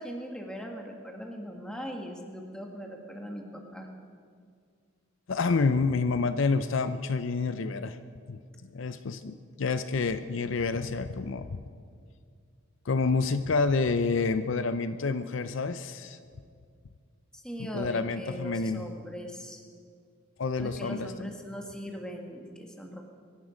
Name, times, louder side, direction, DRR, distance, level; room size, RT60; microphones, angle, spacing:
voice 1, 0.0-3.9 17.3-19.6 20.6-23.0, equal, 5° left, 1 dB, 1.6 m, -40 dB
voice 2, 5.3-8.0 8.3-8.4 8.7-11.6 12.9-16.2 17.6-18.9 20.4-21.1, left 4 dB, 65° left, 10 dB, 0.5 m, -28 dB
23.5 x 11.0 x 5.1 m, 2.2 s
head